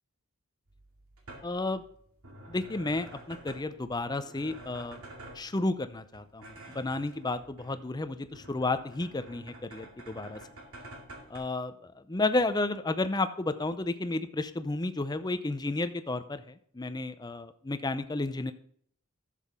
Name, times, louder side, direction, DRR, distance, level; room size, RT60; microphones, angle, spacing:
sound 1, 0.7-11.4, right 1 dB, 70° right, 2.4 m, -50 dB
voice 1, 1.4-1.8 2.5-5.0 5.3-10.4 11.3-18.5, left 2 dB, 20° left, 11 dB, 0.5 m, -32 dB
12.0 x 7.5 x 3.6 m, 0.62 s
head